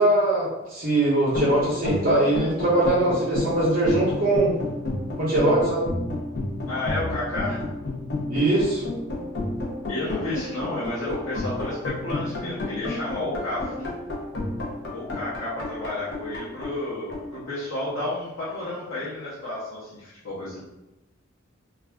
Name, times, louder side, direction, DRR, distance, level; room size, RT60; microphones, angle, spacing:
voice 1, 0.0-4.5 5.2-5.9 8.3-8.8, right 2 dB, 45° right, -7 dB, 0.6 m, -21 dB
sound 1, 1.3-18.1, left 2 dB, 55° left, 0.6 m, -31 dB
voice 2, 6.7-7.6 9.9-13.9 14.9-20.6, left 2 dB, 90° left, -10 dB, 0.8 m, -31 dB
2.4 x 2.3 x 3.3 m, 0.97 s
head